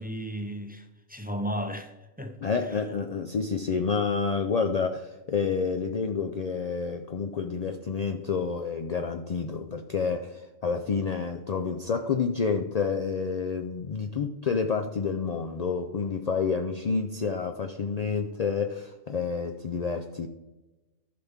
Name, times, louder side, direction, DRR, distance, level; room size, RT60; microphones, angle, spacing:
voice 1, 0.0-2.8, equal, 15° right, 0.3 m, -35 dB
voice 2, 2.4-20.3, left 5 dB, 60° left, 0.4 m, -29 dB
14.5 x 5.8 x 3.5 m
omnidirectional pair, 1.4 m